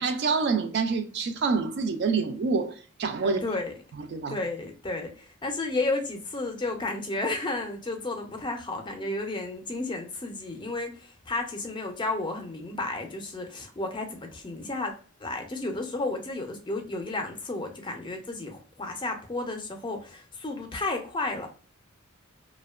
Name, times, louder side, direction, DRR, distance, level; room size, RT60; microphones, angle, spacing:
voice 1, 0.0-3.4 4.0-4.4, right 4 dB, 50° right, 0.3 m, -27 dB
voice 2, 3.2-3.7 4.3-14.9 15.2-21.5, left 2 dB, 20° left, 0.4 m, -32 dB
2.7 x 2.1 x 2.2 m
head